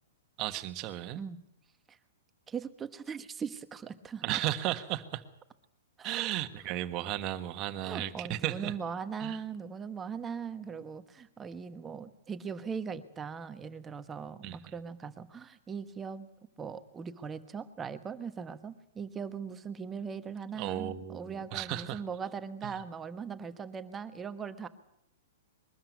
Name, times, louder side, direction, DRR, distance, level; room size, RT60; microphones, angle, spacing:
voice 1, 0.4-1.2 4.2-5.2 6.0-8.8 9.2-9.4 14.4-14.6 20.5-22.0 22.6-22.8, right 13 dB, 35° right, 1.5 m, -34 dB
voice 2, 2.5-4.4 6.0-6.3 7.8-16.3 16.6-24.7, right 6 dB, 15° right, 1.2 m, -40 dB
22.0 x 13.0 x 9.4 m
hypercardioid pair, 130°, 0 cm